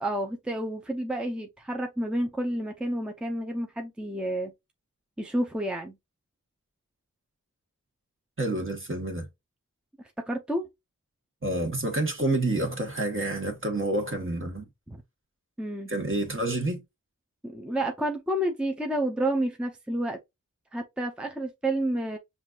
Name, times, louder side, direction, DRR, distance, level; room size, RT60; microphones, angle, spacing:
voice 1, 0.0-4.5 5.2-6.0 10.3-10.7 14.9-15.0 15.6-15.9 17.4-20.2 20.7-22.2, right 1 dB, 5° right, 0.6 m, -30 dB
voice 2, 8.4-9.2 11.4-14.7 15.9-16.8, right 2 dB, 40° right, 1.3 m, -28 dB
5.7 x 2.5 x 2.3 m
wide cardioid pair, 65°, 32 cm